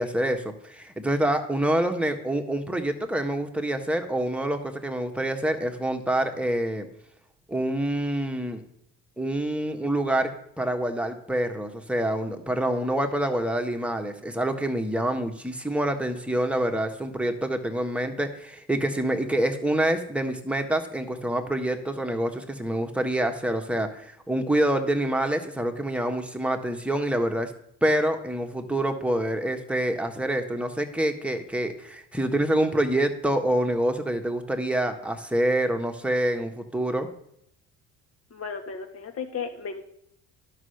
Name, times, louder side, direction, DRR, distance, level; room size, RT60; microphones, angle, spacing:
voice 1, 0.0-6.9 7.5-8.6 9.2-10.3 10.6-27.5 27.8-37.1, right 1 dB, 5° right, 4 dB, 1.4 m, -26 dB
voice 2, 38.3-39.8, left 5 dB, 45° left, 5 dB, 1.9 m, -34 dB
11.0 x 5.7 x 6.5 m, 0.72 s
supercardioid pair, 85°, 32 cm